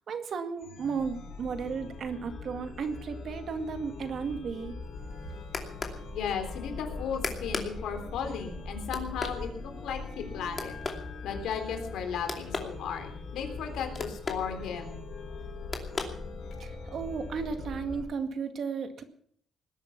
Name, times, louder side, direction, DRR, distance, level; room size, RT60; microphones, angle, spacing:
voice 1, 0.1-4.7 16.6-19.0, right 5 dB, 60° right, 8 dB, 2.0 m, -34 dB
Chime, 0.6-18.0, left 3 dB, 60° left, 6.2 m, -41 dB
sound 1, 4.8-16.8, left 4 dB, 35° left, 2.7 m, -41 dB
voice 2, 6.1-10.0 10.3-10.8 11.2-15.0, left 7 dB, 85° left, 5 dB, 3.5 m, -35 dB
19.5 x 11.0 x 6.0 m, 0.62 s
cardioid pair, 115°, 0 cm